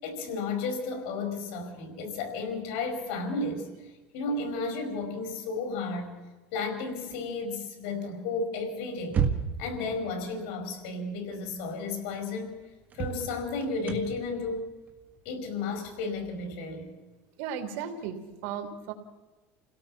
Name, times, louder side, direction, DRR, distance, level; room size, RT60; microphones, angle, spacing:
voice 1, 0.0-3.7 4.1-6.1 6.5-9.2 9.6-12.5 12.9-14.6 15.2-16.9, left 3 dB, 70° left, 5 dB, 5.2 m, -33 dB
sound 1, 9.0-9.8 11.5-11.6 12.1-12.2 12.9-16.5, right 6 dB, 25° right, 1.5 m, -32 dB
voice 2, 17.4-18.9, right 7 dB, 80° right, 6 dB, 2.9 m, -35 dB
27.5 x 17.0 x 5.9 m, 1.2 s
cardioid pair, 160°, 7 cm